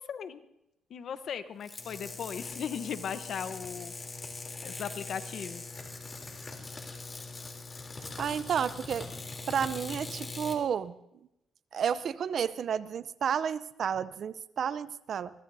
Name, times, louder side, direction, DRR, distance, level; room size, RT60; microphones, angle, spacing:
voice 1, 0.1-0.4 0.9-3.9 4.6-5.6, left 7 dB, 60° left, 11 dB, 1.0 m, -37 dB
sound 1, 1.6-10.6, left 3 dB, 30° left, 3.2 m, -42 dB
voice 2, 8.0-9.1 9.5-10.9 11.7-15.3, right 8 dB, 60° right, 16 dB, 0.6 m, -31 dB
23.5 x 21.5 x 2.7 m, 0.85 s
cardioid pair, 90°, 0 cm